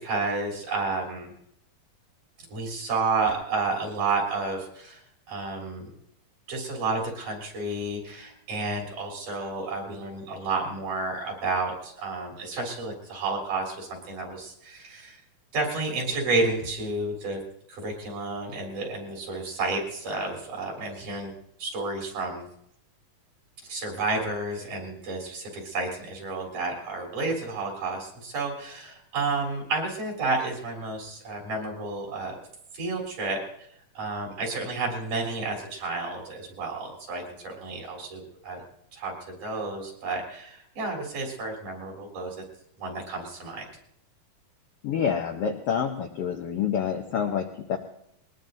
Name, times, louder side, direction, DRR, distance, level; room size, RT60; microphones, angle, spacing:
voice 1, 0.0-1.3 2.5-5.0 5.3-5.9 6.5-15.2 15.5-17.4 17.7-21.3 21.6-22.5 23.6-32.4 32.7-33.4 34.0-38.6 38.9-39.1 39.4-42.4 42.8-43.7, right 3 dB, 65° right, 0 dB, 5.2 m, -31 dB
voice 2, 44.8-47.8, left 7 dB, 85° left, 4 dB, 1.3 m, -27 dB
21.0 x 20.0 x 2.7 m, 0.74 s
omnidirectional pair, 3.9 m